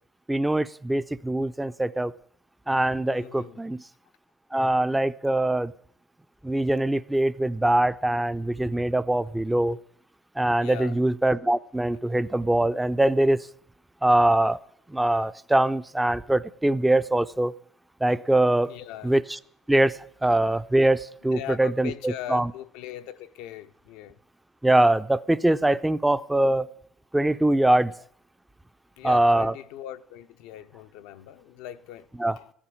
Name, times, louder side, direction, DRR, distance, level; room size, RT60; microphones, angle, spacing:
voice 1, 0.3-2.1 2.7-3.8 4.5-5.7 6.4-9.8 10.4-13.4 14.0-14.6 14.9-17.5 18.0-18.7 19.0-19.4 19.7-22.5 24.6-26.7 27.1-27.9 29.0-29.5 32.2-32.4, right 1 dB, 10° right, 0.5 m, -23 dB
voice 2, 3.1-3.6 10.6-11.0 18.6-19.1 21.3-24.2 29.0-32.1 32.4-32.5, left 11 dB, 85° left, 0.8 m, -40 dB
14.5 x 7.3 x 10.0 m
supercardioid pair, 90°, 0 cm